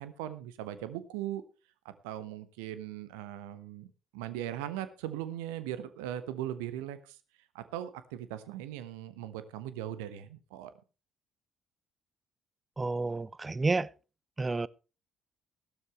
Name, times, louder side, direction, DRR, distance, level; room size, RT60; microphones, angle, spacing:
voice 1, 0.0-1.4 1.8-7.2 7.5-10.7, right 12 dB, 70° right, 1.2 m, -39 dB
voice 2, 12.8-13.9 14.4-14.7, right 3 dB, 20° right, 0.5 m, -30 dB
16.0 x 12.5 x 3.2 m
figure-of-eight pair, 45°, 0 cm